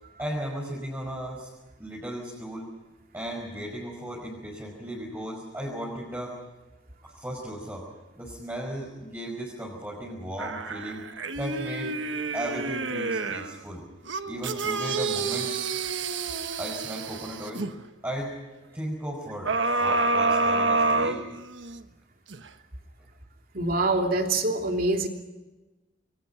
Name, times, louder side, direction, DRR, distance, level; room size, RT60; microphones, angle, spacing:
voice 1, 0.2-1.5 1.8-2.7 3.1-6.4 7.0-7.9 8.2-11.0 11.4-11.9 12.3-13.8 14.3-15.5 16.6-17.7 18.0-18.3 18.7-21.2, equal, 10° right, -3 dB, 5.3 m, -35 dB
sound 1, 10.4-13.5 14.1-17.7 19.5-21.8 22.3-22.4, right 3 dB, 90° right, 1.3 m, -28 dB
voice 2, 23.5-25.1, right 2 dB, 50° right, 3 dB, 3.0 m, -25 dB
27.5 x 23.5 x 5.8 m, 1.1 s
head